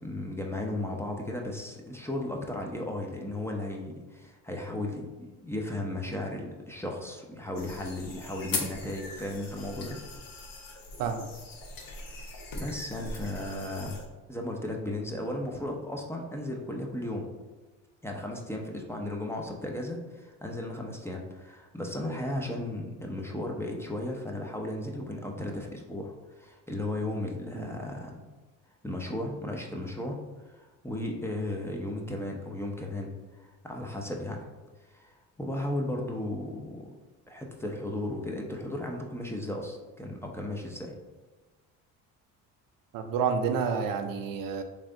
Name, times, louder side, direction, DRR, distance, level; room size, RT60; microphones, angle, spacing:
voice 1, 0.0-10.0 12.6-13.9 14.3-17.3 18.0-28.1 28.8-30.2 30.5-34.4 34.9-36.9 37.3-40.9, left 1 dB, 5° left, 0 dB, 0.6 m, -35 dB
sound 1, 7.5-14.0, left 3 dB, 60° left, 0.9 m, -40 dB
voice 2, 42.9-44.6, right 6 dB, 60° right, 6 dB, 0.5 m, -29 dB
3.2 x 2.7 x 3.7 m, 1.2 s
supercardioid pair, 75°, 38 cm